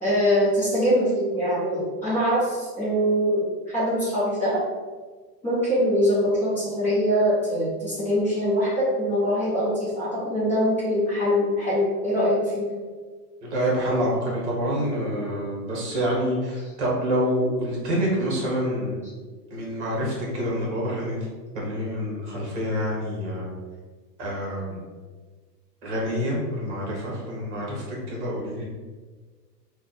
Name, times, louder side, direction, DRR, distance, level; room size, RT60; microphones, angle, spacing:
voice 1, 0.0-3.5 3.7-4.6 5.4-12.7, equal, 5° left, -13 dB, 0.7 m, -23 dB
voice 2, 13.4-19.0 19.5-21.3 21.5-23.5 24.2-24.8 25.8-28.6, equal, 45° right, -4 dB, 1.2 m, -27 dB
3.0 x 2.3 x 3.9 m, 1.4 s
hypercardioid pair, 165°, 50 cm